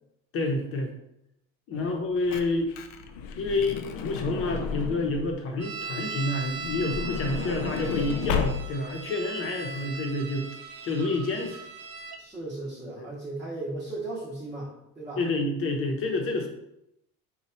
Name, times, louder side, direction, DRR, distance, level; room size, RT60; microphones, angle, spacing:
voice 1, 0.3-0.9 1.7-2.7 3.4-10.5 10.8-11.6 13.0-13.1 15.2-16.5, left 2 dB, 40° left, 3 dB, 0.7 m, -28 dB
Truck / Door, 1.9-5.4 6.4-9.0 9.7-9.8 10.0-10.1, left 6 dB, 90° left, 0.5 m, -33 dB
sound 1, 5.6-12.2, right 4 dB, 55° right, 0.6 m, -39 dB
voice 2, 12.1-15.2, right 2 dB, 10° right, -7 dB, 0.7 m, -37 dB
4.2 x 2.3 x 4.2 m, 0.82 s
cardioid pair, 165°, 33 cm